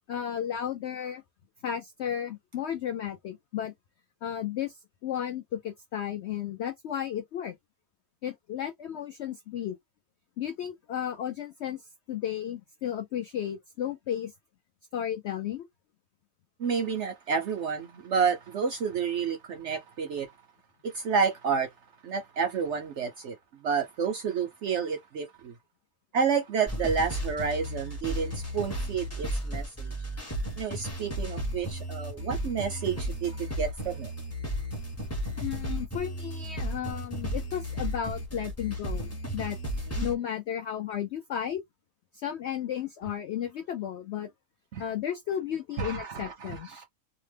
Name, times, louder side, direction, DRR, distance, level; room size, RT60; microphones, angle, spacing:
voice 1, 0.1-1.2 1.6-3.7 4.2-7.5 8.2-9.8 10.4-11.8 12.1-14.3 14.9-15.7 35.4-39.6 40.0-41.6 42.1-44.3 44.8-46.7, left 10 dB, 75° left, 0.6 m, -33 dB
voice 2, 16.6-20.3 20.8-21.7 22.0-23.4 23.6-25.5 26.1-29.9 30.6-34.1 39.9-40.1 44.7-44.8 45.8-46.8, right 6 dB, 65° right, 0.7 m, -30 dB
sound 1, 26.7-40.2, equal, 15° left, 0.6 m, -34 dB
2.8 x 2.0 x 3.2 m
omnidirectional pair, 1.7 m